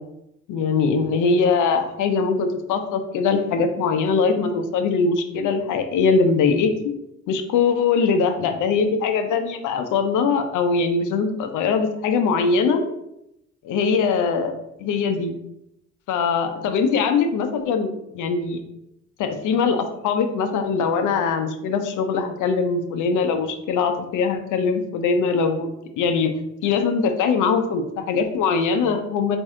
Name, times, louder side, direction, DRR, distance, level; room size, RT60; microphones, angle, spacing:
voice 1, 0.5-6.7 7.3-12.8 13.6-14.5 14.8-15.3 16.1-18.6 19.2-25.7 26.0-26.3 26.6-29.4, left 5 dB, 80° left, 7 dB, 0.6 m, -21 dB
4.2 x 2.7 x 3.6 m, 0.83 s
cardioid pair, 90°, 30 cm